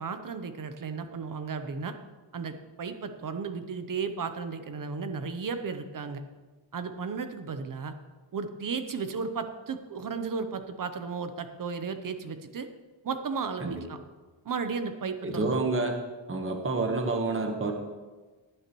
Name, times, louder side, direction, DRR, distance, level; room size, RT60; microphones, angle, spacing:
voice 1, 0.0-1.9 2.3-6.2 6.7-7.9 8.3-12.7 13.0-14.0 14.4-15.6, right 5 dB, 45° right, 9 dB, 0.8 m, -34 dB
voice 2, 15.2-15.9 16.3-17.7, right 3 dB, 25° right, 3 dB, 1.3 m, -28 dB
18.0 x 9.8 x 3.1 m, 1.3 s
wide cardioid pair, 175°, 48 cm